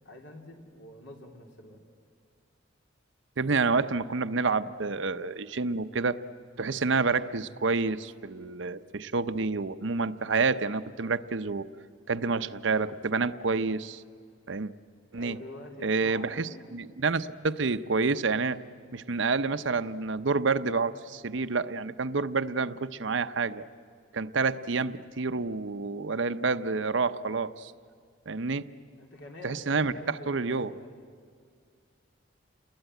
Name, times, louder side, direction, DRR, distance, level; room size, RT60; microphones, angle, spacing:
voice 1, 0.0-1.8 15.1-16.7 29.0-31.0, left 1 dB, 75° left, 2 dB, 3.4 m, -46 dB
voice 2, 3.4-6.2 6.6-11.7 12.1-14.0 14.5-14.7 15.1-15.4 15.8-18.6 18.9-23.7 24.1-27.7 28.3-28.7 29.4-30.7, right 4 dB, 75° right, 11 dB, 0.7 m, -28 dB
28.5 x 21.0 x 9.1 m, 2.2 s
head